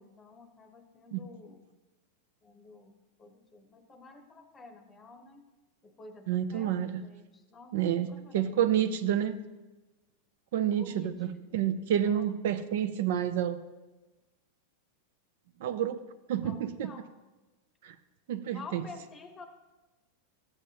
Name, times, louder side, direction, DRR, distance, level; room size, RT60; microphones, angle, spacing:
voice 1, 0.0-1.6 2.4-5.4 5.8-8.7 10.8-11.7 12.0-12.3 16.4-17.1 18.5-19.5, left 4 dB, 15° left, 5 dB, 0.9 m, -50 dB
voice 2, 6.3-7.0 7.7-8.1 8.3-9.4 10.5-13.6 15.6-16.0 16.3-16.9 17.8-18.0 18.3-18.8, right 10 dB, 60° right, 11 dB, 0.5 m, -29 dB
14.0 x 8.0 x 2.8 m, 1.1 s
supercardioid pair, 165°, 0 cm